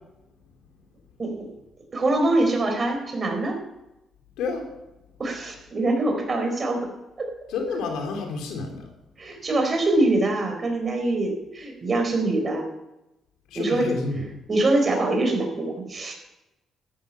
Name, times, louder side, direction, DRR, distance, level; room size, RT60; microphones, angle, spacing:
voice 1, 1.9-3.6 5.2-6.9 7.2-7.3 9.2-12.7 13.5-13.9 14.5-16.1, right 2 dB, 35° right, 3 dB, 4.4 m, -24 dB
voice 2, 4.4-4.7 7.5-8.9 13.5-14.3, left 4 dB, 90° left, 3 dB, 2.9 m, -29 dB
13.0 x 11.5 x 5.7 m, 0.94 s
cardioid pair, 90°, 0 cm